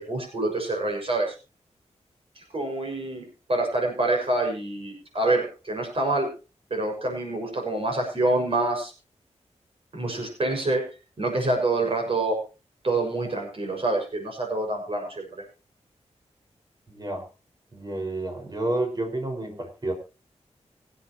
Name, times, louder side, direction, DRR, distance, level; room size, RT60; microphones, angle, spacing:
voice 1, 0.1-1.3 2.4-6.3 6.7-8.9 9.9-10.8 11.2-12.4 12.8-15.4, right 2 dB, 50° right, 1 dB, 6.4 m, -26 dB
voice 2, 16.9-17.2 17.7-19.9, right 2 dB, 35° right, 3 dB, 5.5 m, -30 dB
24.5 x 9.1 x 3.1 m, 0.32 s
wide cardioid pair, 90°, 12 cm